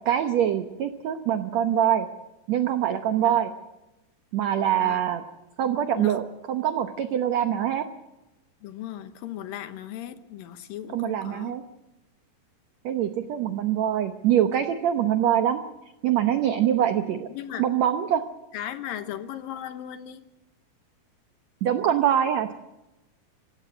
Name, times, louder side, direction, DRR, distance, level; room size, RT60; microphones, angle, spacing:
voice 1, 0.0-2.1 2.5-3.5 4.3-5.2 5.6-7.8 10.9-11.6 12.8-15.6 16.0-17.3 17.6-18.2 21.6-22.5, right 10 dB, 90° right, 1.5 m, -24 dB
voice 2, 8.6-11.5 17.3-17.7 18.5-20.2, left 11 dB, 70° left, 2.5 m, -37 dB
26.0 x 16.0 x 7.6 m
omnidirectional pair, 4.5 m